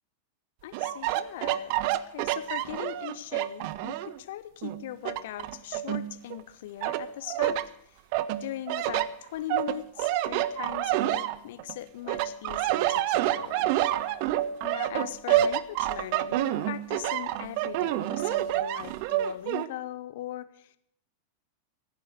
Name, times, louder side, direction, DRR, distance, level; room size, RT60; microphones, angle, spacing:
voice 1, 0.6-7.6 7.9-8.0 8.4-13.7 14.6-20.8, left 13 dB, 55° left, 15 dB, 0.9 m, -40 dB
sound 1, 0.7-4.2 4.6-6.4 6.8-7.7 8.1-11.7 12.1-19.7, right 13 dB, 45° right, 0.7 m, -28 dB
16.0 x 9.8 x 7.7 m, 0.74 s
figure-of-eight pair, 90°, 0 cm